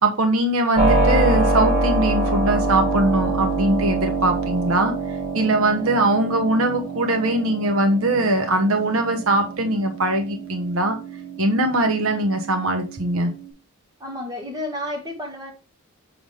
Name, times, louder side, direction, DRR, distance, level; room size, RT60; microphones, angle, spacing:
voice 1, 0.0-4.9 5.3-11.0 11.4-13.3, right 1 dB, 70° right, 1.0 m, -21 dB
Keyboard (musical), 0.8-13.5, right 2 dB, 35° right, 4.1 m, -25 dB
voice 2, 14.0-15.5, left 1 dB, 15° right, 1.7 m, -31 dB
6.9 x 3.7 x 4.8 m
head